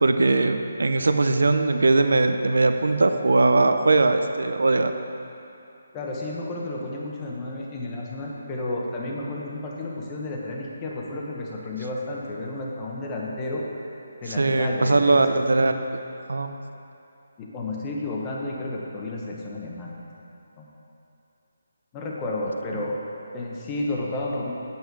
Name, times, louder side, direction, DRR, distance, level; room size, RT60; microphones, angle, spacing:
voice 1, 0.0-4.9 14.3-15.7 16.3-16.5, right 3 dB, 90° right, 8 dB, 0.6 m, -20 dB
voice 2, 5.9-13.9 14.2-15.2 17.4-20.0 20.6-20.7 21.9-23.0 23.3-24.5, left 2 dB, 15° left, -3 dB, 0.9 m, -31 dB
8.6 x 8.2 x 4.7 m, 2.7 s
hypercardioid pair, 175°, 0 cm